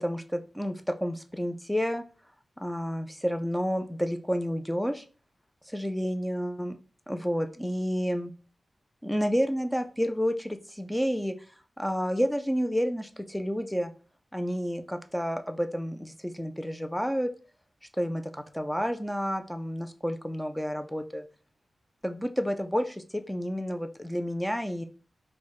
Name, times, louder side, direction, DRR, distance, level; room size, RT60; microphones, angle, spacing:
voice 1, 0.0-2.0 2.6-5.0 5.7-6.8 7.1-8.3 9.0-11.3 11.8-13.9 14.3-17.3 18.0-21.2 22.0-24.8, equal, 5° left, 7 dB, 0.3 m, -30 dB
4.5 x 2.1 x 3.0 m, 0.38 s
wide cardioid pair, 110°, 0 cm